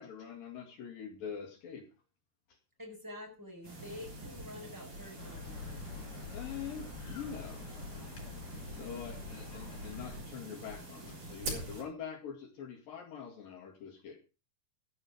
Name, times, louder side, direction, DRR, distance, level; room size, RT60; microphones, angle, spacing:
voice 1, 0.0-1.9 2.5-2.6 6.3-7.6 8.0-8.2 8.7-14.2, left 7 dB, 65° left, 3 dB, 3.6 m, -44 dB
voice 2, 2.8-5.8, left 1 dB, 5° right, 1 dB, 4.8 m, -47 dB
sound 1, 3.6-11.8, right 2 dB, 50° right, 7.7 m, -45 dB
sound 2, 5.2-10.2, left 5 dB, 50° left, 5.4 m, -46 dB
14.5 x 11.0 x 4.9 m, 0.33 s
omnidirectional pair, 4.6 m